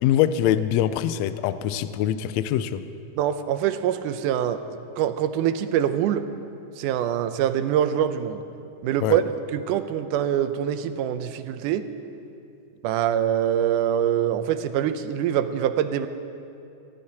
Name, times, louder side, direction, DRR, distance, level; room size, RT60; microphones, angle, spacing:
voice 1, 0.0-2.8 9.0-9.2, left 11 dB, 80° left, 13 dB, 1.5 m, -23 dB
voice 2, 3.2-4.6 5.0-6.2 6.8-8.4 8.8-11.8 12.8-16.1, right 10 dB, 90° right, 10 dB, 2.2 m, -24 dB
23.5 x 16.0 x 2.9 m, 2.6 s
omnidirectional pair, 3.5 m